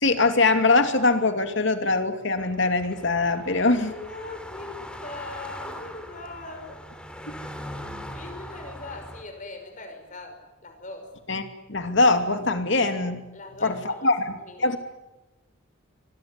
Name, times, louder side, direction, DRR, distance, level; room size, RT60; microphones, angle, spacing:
voice 1, 0.0-3.9 7.3-7.4 11.3-11.4 11.7-13.2 13.6-14.3 14.6-14.8, left 3 dB, 60° left, 7 dB, 2.7 m, -22 dB
sound 1, 2.4-9.2, equal, 5° left, 3.1 m, -40 dB
voice 2, 3.5-6.8 8.1-11.1 13.3-14.1 14.4-14.8, left 2 dB, 40° left, 6 dB, 5.7 m, -40 dB
24.5 x 20.0 x 9.6 m, 1.0 s
head